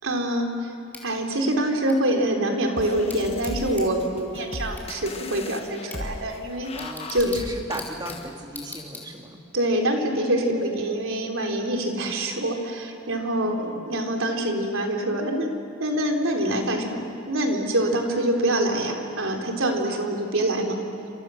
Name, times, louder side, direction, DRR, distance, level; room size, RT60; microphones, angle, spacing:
voice 1, 0.0-0.7 1.0-7.3 9.5-15.5 15.8-17.0 17.3-20.8, right 1 dB, 75° right, 1 dB, 3.7 m, -25 dB
Bicycle / Tick, 0.9-9.5, left 2 dB, 10° left, 4.1 m, -44 dB
sound 1, 2.8-8.3, left 2 dB, 30° left, 1.1 m, -37 dB
voice 2, 6.7-9.4 13.4-13.9, right 1 dB, 20° right, 2 dB, 2.3 m, -37 dB
29.5 x 27.0 x 6.5 m, 3.0 s
head